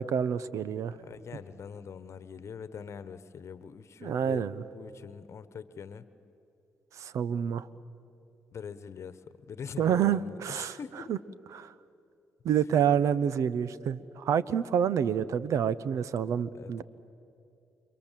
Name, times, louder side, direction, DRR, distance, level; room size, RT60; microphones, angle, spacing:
voice 1, 0.0-1.0 4.0-4.5 7.0-7.7 9.8-10.8 11.1-11.2 11.5-11.7 12.4-16.8, right 8 dB, 70° right, 17 dB, 0.8 m, -28 dB
voice 2, 0.9-4.4 4.7-6.1 8.5-11.1 12.9-13.1 16.5-16.8, left 6 dB, 55° left, 14 dB, 1.1 m, -43 dB
29.5 x 25.0 x 7.5 m, 2.7 s
supercardioid pair, 50°, 6 cm